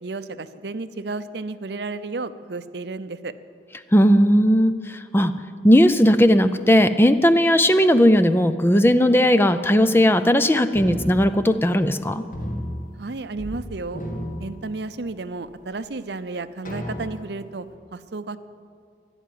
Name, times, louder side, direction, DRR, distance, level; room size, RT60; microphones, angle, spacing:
voice 1, 0.0-3.3 13.0-14.0 14.4-17.7 17.9-18.4, right 3 dB, 65° right, 13 dB, 0.6 m, -32 dB
voice 2, 3.9-5.3 5.6-12.2, equal, 10° left, 11 dB, 0.4 m, -17 dB
sound 1, 10.7-12.0 12.3-13.6 13.9-15.2 15.8-15.9 16.6-17.5, equal, 45° left, 2.0 m, -33 dB
14.0 x 10.5 x 9.3 m, 2.2 s
head